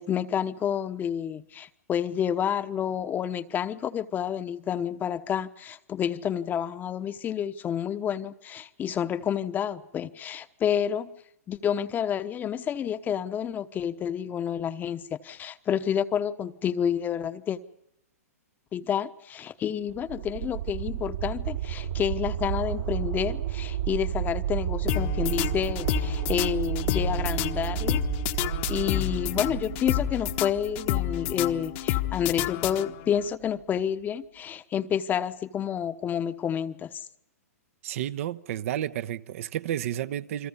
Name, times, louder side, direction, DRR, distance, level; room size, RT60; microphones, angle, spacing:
voice 1, 0.0-11.1 11.5-17.6 18.7-28.0 28.7-37.0, left 9 dB, 20° left, 1.0 m, -29 dB
sound 1, 19.9-32.7 33.2-33.3, right 11 dB, 75° right, 3.0 m, -32 dB
sound 2, 24.9-33.2, left 16 dB, 45° left, 1.2 m, -30 dB
voice 2, 37.8-40.5, right 11 dB, 60° right, 1.0 m, -31 dB
29.5 x 22.5 x 5.5 m
hypercardioid pair, 130°, 8 cm